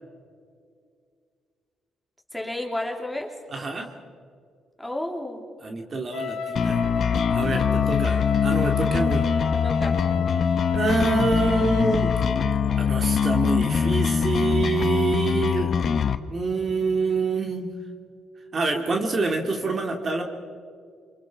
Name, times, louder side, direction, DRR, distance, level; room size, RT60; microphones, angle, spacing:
voice 1, 2.3-3.3 4.8-5.5 9.6-10.0, left 1 dB, 5° left, 1 dB, 3.3 m, -31 dB
voice 2, 3.5-3.9 5.6-6.8 7.3-9.2 10.7-12.1 12.8-15.7 16.3-17.7 18.5-20.2, right 3 dB, 40° right, 3 dB, 2.4 m, -26 dB
Wind instrument woodwind instrument, 6.1-12.5, left 5 dB, 85° left, 1.7 m, -30 dB
sound 1, 6.6-16.2, left 7 dB, 55° left, 1.0 m, -23 dB
28.0 x 25.0 x 4.7 m, 2.2 s
cardioid pair, 90°, 0 cm